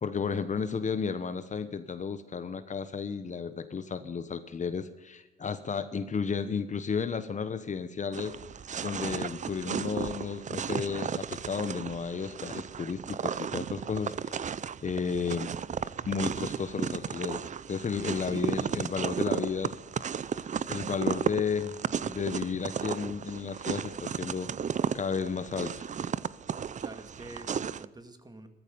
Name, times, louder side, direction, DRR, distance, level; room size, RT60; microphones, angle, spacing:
voice 1, 0.0-8.4 8.8-14.5 14.8-15.5 16.1-19.7 20.4-21.8 22.1-24.5 24.9-25.9, left 5 dB, 40° left, 11 dB, 1.1 m, -33 dB
sound 1, 8.1-27.9, right 7 dB, 40° right, 0.6 m, -34 dB
voice 2, 26.8-28.5, right 2 dB, 20° right, 7 dB, 2.2 m, -47 dB
14.5 x 14.0 x 6.9 m, 1.1 s
cardioid pair, 90°, 20 cm